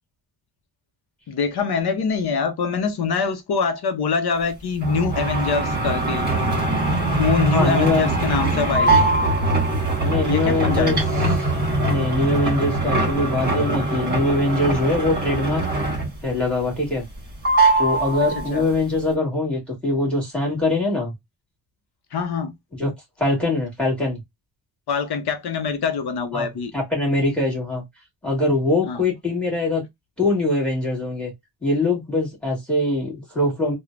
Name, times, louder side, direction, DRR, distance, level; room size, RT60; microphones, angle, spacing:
voice 1, 1.3-6.3 7.2-9.1 10.2-11.2 18.3-18.7 22.1-22.5 24.9-26.7 28.9-29.0, left 5 dB, 60° left, 0.7 m, -24 dB
sound 1, 4.8-16.3 16.6-17.2 17.4-18.7, right 2 dB, 25° right, 1.4 m, -22 dB
voice 2, 7.5-8.1 10.0-11.0 11.4-11.5 11.8-15.6 16.2-17.0 17.8-21.1 22.8-22.9 23.2-24.2 26.3-26.5 26.7-27.8 28.2-29.8 30.2-31.3 31.6-33.7, left 2 dB, 5° left, 1.5 m, -22 dB
3.1 x 2.1 x 2.4 m
wide cardioid pair, 175°, 43 cm